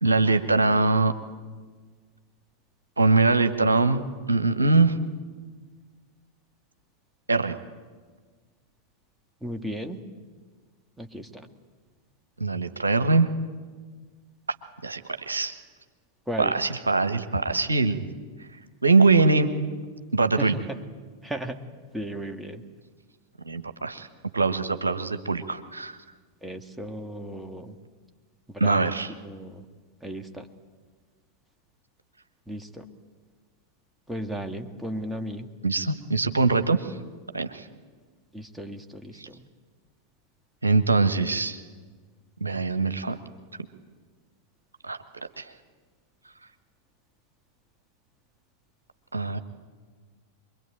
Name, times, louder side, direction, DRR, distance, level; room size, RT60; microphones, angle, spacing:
voice 1, 0.0-1.1 3.0-4.0 4.3-4.9 7.3-7.6 12.4-13.3 14.8-15.6 16.4-18.0 18.8-19.5 20.1-20.5 23.4-24.1 24.3-26.0 28.6-29.1 35.6-36.9 37.3-37.6 39.2-39.3 40.6-41.6 42.4-43.2 44.8-45.0 45.4-45.5 49.1-49.4, right 3 dB, 80° right, 9 dB, 1.3 m, -22 dB
voice 2, 9.4-10.0 11.0-11.5 16.3-16.6 20.4-20.6 21.2-21.6 21.9-22.6 26.4-27.7 28.5-29.6 30.0-30.5 32.5-32.9 34.1-35.5 38.3-39.4, right 1 dB, 5° right, 6 dB, 1.8 m, -35 dB
25.0 x 22.5 x 9.0 m, 1.5 s
figure-of-eight pair, 90°, 0 cm